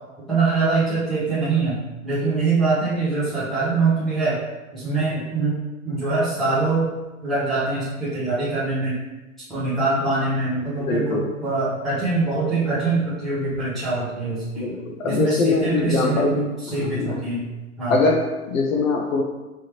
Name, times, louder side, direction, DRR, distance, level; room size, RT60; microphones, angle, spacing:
voice 1, 0.3-4.4 4.7-5.6 5.8-6.9 7.2-8.9 9.5-14.7 15.0-17.5 17.8-18.0, right 3 dB, ahead, -14 dB, 0.4 m, -23 dB
voice 2, 10.8-11.3 14.6-16.4 16.7-17.2 17.9-19.2, left 3 dB, 70° left, 2 dB, 0.9 m, -22 dB
4.8 x 3.2 x 2.9 m, 1.1 s
hypercardioid pair, 150°, 41 cm